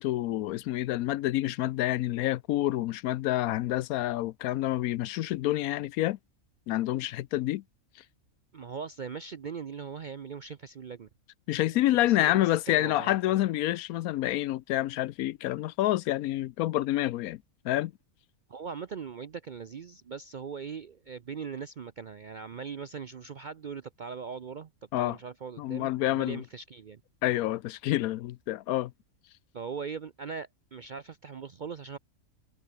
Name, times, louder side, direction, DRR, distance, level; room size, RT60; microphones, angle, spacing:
voice 1, 0.0-6.2 6.7-7.6 11.5-17.9 24.9-25.2 25.6-26.4 27.2-28.9, left 15 dB, 80° left, 1.0 m, -28 dB
voice 2, 8.5-11.1 11.7-13.5 18.5-24.7 25.0-27.0 29.5-32.0, right 6 dB, 55° right, 0.5 m, -40 dB
omnidirectional pair, 1.5 m